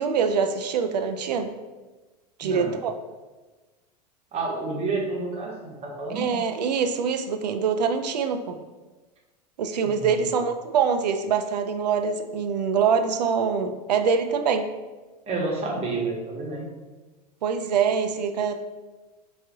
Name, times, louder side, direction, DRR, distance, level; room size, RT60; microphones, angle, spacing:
voice 1, 0.0-1.5 2.4-2.9 6.1-8.6 9.6-14.7 17.4-18.6, right 6 dB, 75° right, 7 dB, 0.4 m, -24 dB
voice 2, 2.4-2.7 4.3-6.4 9.8-10.3 15.3-16.7, right 3 dB, 30° right, -1 dB, 1.0 m, -30 dB
4.9 x 2.5 x 2.5 m, 1.2 s
hypercardioid pair, 90°, 21 cm